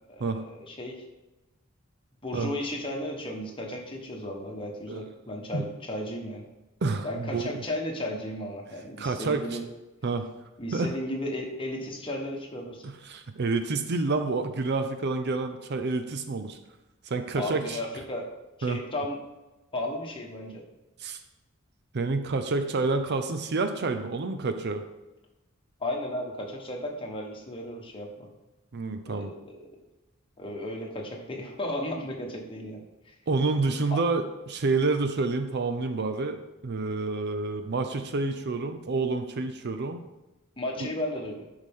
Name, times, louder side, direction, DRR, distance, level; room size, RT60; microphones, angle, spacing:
voice 1, 0.1-0.9 2.2-6.4 7.0-9.6 10.6-12.9 17.4-18.3 18.6-19.2 19.7-20.6 25.8-28.3 29.1-29.6 30.4-33.1 33.9-34.0 40.6-41.4, left 1 dB, 25° left, -1 dB, 1.4 m, -34 dB
voice 2, 6.8-7.6 9.0-9.6 10.0-10.3 10.7-10.9 12.8-16.6 17.1-17.8 18.6-18.8 21.0-21.2 21.9-24.8 28.7-29.3 33.3-40.0 40.8-40.9, right 3 dB, 55° right, 8 dB, 0.6 m, -28 dB
11.5 x 4.9 x 3.7 m, 1.1 s
head